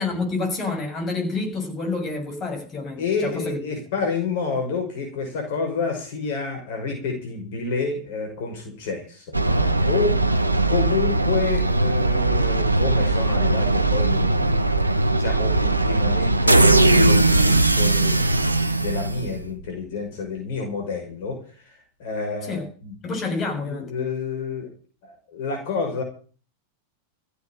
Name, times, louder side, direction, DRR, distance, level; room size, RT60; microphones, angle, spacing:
voice 1, 0.0-3.6 22.5-22.6 23.0-23.9, left 3 dB, 30° left, 6.5 m, -28 dB
voice 2, 2.9-22.9 23.6-24.7 25.0-26.0, left 4 dB, 50° left, 5.8 m, -29 dB
sound 1, 9.3-19.6, right 2 dB, 85° right, 0.9 m, -19 dB
15.5 x 8.4 x 9.1 m
figure-of-eight pair, 90°, 0 cm